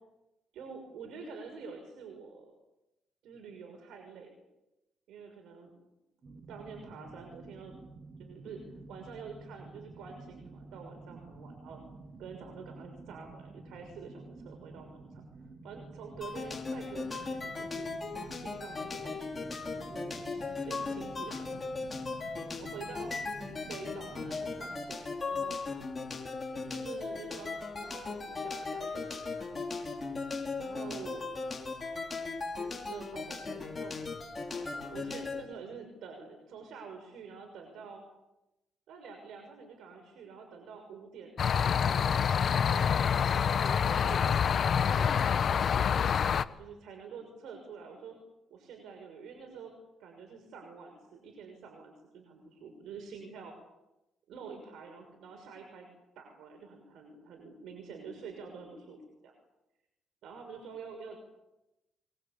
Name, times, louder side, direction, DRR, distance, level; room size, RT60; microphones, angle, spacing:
voice 1, 0.5-2.5 3.2-4.3 5.1-5.7 6.5-7.8 8.2-8.6 8.9-11.8 12.2-15.2 15.6-17.9 18.3-21.7 22.6-23.1 23.7-25.6 26.5-29.5 30.6-31.3 32.9-34.0 34.5-38.0 38.9-42.9 43.3-45.4 45.7-46.1 46.6-48.2 48.5-49.7 50.0-53.5 54.3-55.9 56.2-59.3 60.2-61.2, right 5 dB, 80° right, 4 dB, 6.2 m, -47 dB
sound 1, 6.2-24.8, right 3 dB, 35° right, 4.2 m, -50 dB
sound 2, 16.2-35.4, left 4 dB, 25° left, 5.3 m, -38 dB
sound 3, 41.4-46.4, left 7 dB, 50° left, 1.1 m, -27 dB
24.0 x 23.0 x 8.5 m, 0.95 s
cardioid pair, 105°, 0 cm